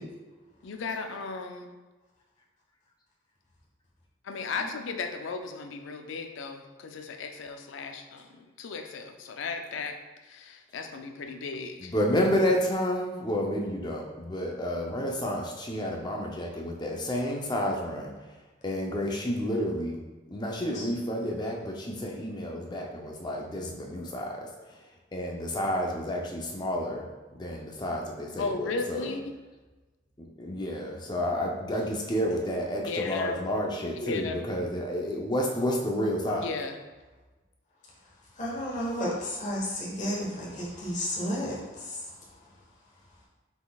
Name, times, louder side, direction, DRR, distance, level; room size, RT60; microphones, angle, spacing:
voice 1, 0.6-1.7 4.2-10.0 10.2-11.9 14.9-15.1 28.4-29.3 32.8-33.5 34.0-34.4 36.4-36.8, left 4 dB, 75° left, 6 dB, 0.4 m, -35 dB
voice 2, 11.8-18.1 18.6-20.0 20.3-24.5 25.1-27.0 27.3-29.1 30.2-36.5, equal, 20° left, 0 dB, 0.5 m, -30 dB
voice 3, 38.4-42.0, equal, 40° left, -5 dB, 1.1 m, -32 dB
5.8 x 4.0 x 2.3 m, 1.2 s
head